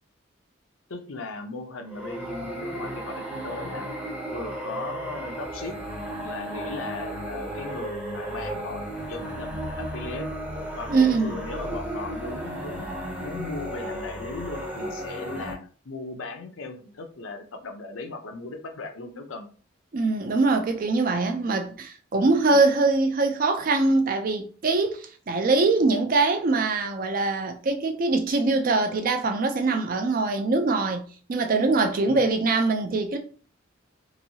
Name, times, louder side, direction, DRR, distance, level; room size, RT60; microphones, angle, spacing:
voice 1, 0.9-3.9 4.3-5.8 6.2-10.3 10.8-12.9 13.2-19.5 22.5-22.6 32.0-32.3, left 3 dB, 90° left, 0.6 m, -37 dB
sound 1, 1.9-15.5, right 1 dB, 10° right, 0.7 m, -34 dB
voice 2, 10.9-11.4 19.9-33.2, right 3 dB, 45° right, 0.4 m, -23 dB
3.0 x 2.6 x 2.7 m
head